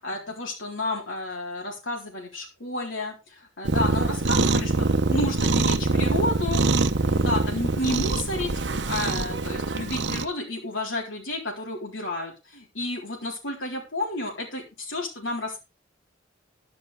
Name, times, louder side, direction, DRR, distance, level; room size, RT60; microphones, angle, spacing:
voice 1, 0.0-6.6 7.0-15.6, left 2 dB, 85° left, -1 dB, 4.0 m, -31 dB
Cat, 3.6-10.3, right 3 dB, 60° right, 0.9 m, -24 dB
11.5 x 11.5 x 3.4 m, 0.26 s
head